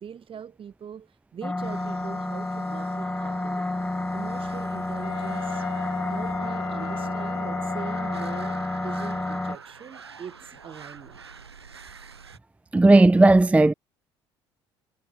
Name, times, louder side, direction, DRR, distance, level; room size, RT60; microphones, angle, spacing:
voice 1, 0.0-3.7 4.1-5.7 6.1-11.2, right 8 dB, 40° right, 3.8 m, -42 dB
sound 1, 1.4-9.6, left 2 dB, 10° left, 1.2 m, -30 dB
sound 2, 1.6-12.4, right 5 dB, 90° right, 3.8 m, -45 dB
Wind instrument woodwind instrument, 5.0-8.8, left 31 dB, 70° left, 6.2 m, -39 dB
voice 2, 12.7-13.7, right 2 dB, 10° right, 0.5 m, -15 dB
figure-of-eight pair, 55°, 13 cm